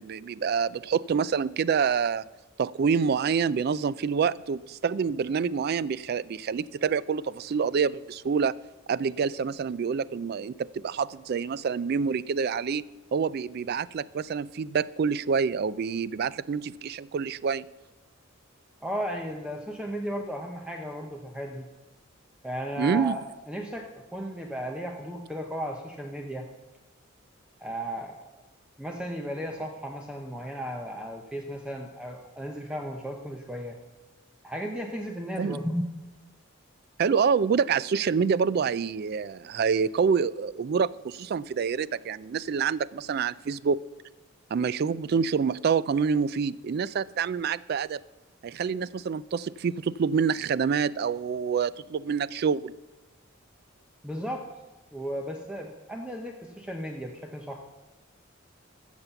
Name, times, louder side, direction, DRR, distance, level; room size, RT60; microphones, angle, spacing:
voice 1, 0.0-2.2 2.6-8.5 8.9-17.7 22.8-23.1 35.4-35.6 37.0-43.8 44.5-48.0 48.4-52.7, right 6 dB, 50° right, 20 dB, 0.3 m, -27 dB
voice 2, 18.8-21.7 22.4-23.2 23.5-26.5 27.6-28.2 28.8-33.8 34.4-35.8 54.0-54.5 54.9-57.6, equal, 5° right, 2 dB, 0.7 m, -35 dB
13.5 x 7.2 x 6.9 m, 1.1 s
head